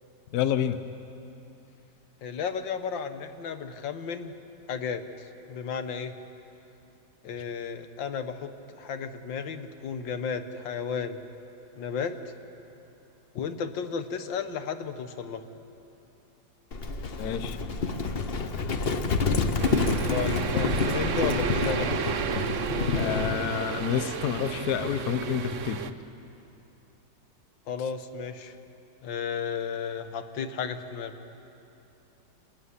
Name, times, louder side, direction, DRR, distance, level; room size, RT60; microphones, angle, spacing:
voice 1, 0.3-0.8 17.2-17.6 22.9-25.9, left 9 dB, 60° left, 11 dB, 1.2 m, -29 dB
voice 2, 2.2-4.3 4.7-6.2 7.2-11.2 11.8-12.1 13.4-15.4 20.1-21.9 27.7-28.6 29.0-31.1, left 6 dB, 85° left, 9 dB, 1.8 m, -33 dB
Livestock farm animals working animals, 16.7-23.4, left 4 dB, 40° left, 0.9 m, -28 dB
sound 1, 19.6-25.9, right 7 dB, 55° right, 1.0 m, -32 dB
27.5 x 14.0 x 9.7 m, 2.9 s
omnidirectional pair, 2.0 m